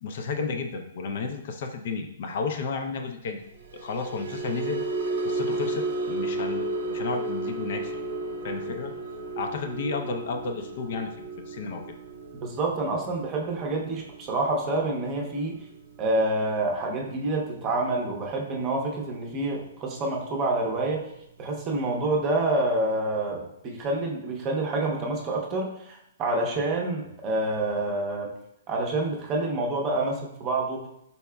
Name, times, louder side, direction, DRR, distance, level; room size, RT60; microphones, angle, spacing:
voice 1, 0.0-3.4 3.7-4.8 5.2-8.0 8.4-8.9 9.4-11.8, left 4 dB, 55° left, 4 dB, 0.5 m, -32 dB
sound 1, 3.6-20.0 20.3-20.6 21.0-21.2, right 2 dB, 80° right, 0.7 m, -34 dB
voice 2, 12.4-15.6 16.0-21.0 21.4-28.3 28.7-30.9, right 2 dB, 25° right, 0 dB, 0.7 m, -27 dB
4.6 x 4.1 x 2.2 m, 0.79 s
hypercardioid pair, 160°, 0 cm